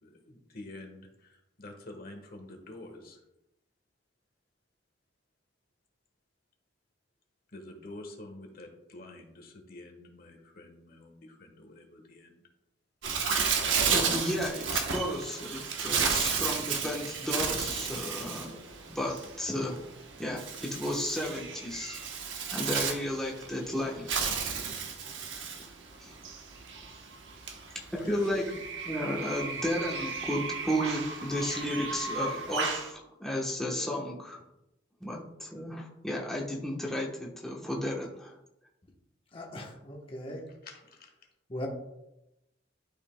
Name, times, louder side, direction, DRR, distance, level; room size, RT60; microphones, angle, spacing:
voice 1, 0.0-3.2 7.5-12.4 28.0-28.4 40.3-41.1, left 2 dB, 55° left, 4 dB, 1.3 m, -47 dB
Bird, 13.0-32.9, right 5 dB, 80° right, 1.0 m, -33 dB
voice 2, 13.9-18.6 18.9-19.8 20.2-22.0 22.5-24.1 26.0-26.1 27.9-28.5 28.9-34.4 35.0-38.3, equal, ahead, -4 dB, 1.0 m, -33 dB
voice 3, 39.3-40.5 41.5-41.7, left 1 dB, 30° left, 0 dB, 1.0 m, -39 dB
11.5 x 5.3 x 2.2 m, 0.89 s
head